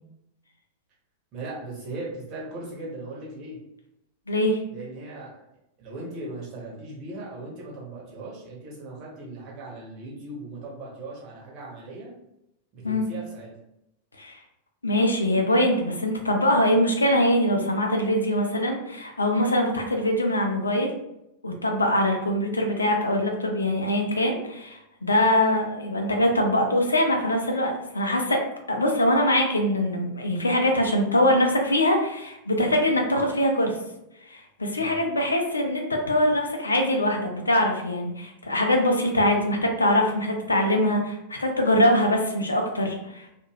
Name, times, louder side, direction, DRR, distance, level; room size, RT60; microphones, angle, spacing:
voice 1, 1.3-3.6 4.7-5.4 5.8-12.1 12.7-13.5 34.7-35.0, right 2 dB, 40° right, -4 dB, 1.1 m, -38 dB
voice 2, 4.3-4.6 12.8-13.0 14.2-14.4 14.8-20.9 21.4-28.4 28.7-33.8 34.3-43.3, left 1 dB, 80° left, 2 dB, 0.5 m, -23 dB
2.5 x 2.2 x 3.0 m, 0.85 s
figure-of-eight pair, 90°, 0 cm